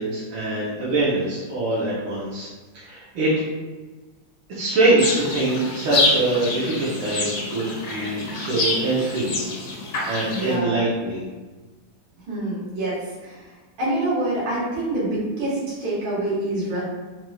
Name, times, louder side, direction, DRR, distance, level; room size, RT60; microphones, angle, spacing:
voice 1, 0.0-2.5 2.7-3.3 4.5-9.4 10.1-11.2, right 2 dB, 80° right, -9 dB, 1.7 m, -23 dB
sound 1, 5.0-10.6, left 2 dB, 70° left, 1.5 m, -27 dB
voice 2, 10.3-10.8 12.3-13.0 13.2-13.4 13.8-16.8, right 1 dB, 65° right, -8 dB, 2.1 m, -26 dB
4.3 x 3.0 x 2.3 m, 1.3 s
omnidirectional pair, 2.3 m